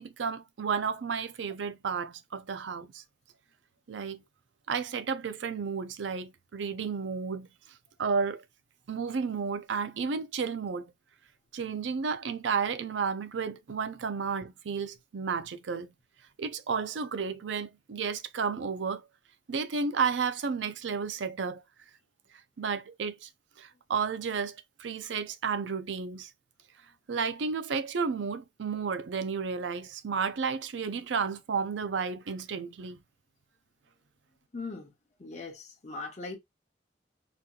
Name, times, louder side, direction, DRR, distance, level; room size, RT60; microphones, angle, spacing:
voice 1, 0.0-3.0 3.9-4.2 4.7-7.5 8.0-8.4 8.9-10.9 11.5-15.9 16.4-19.0 19.5-21.6 22.6-23.3 23.6-26.3 27.1-33.0, right 5 dB, 85° right, 0.5 m, -32 dB
voice 2, 34.5-34.9 35.2-36.4, left 3 dB, 40° left, 0.9 m, -39 dB
4.1 x 2.8 x 2.3 m
head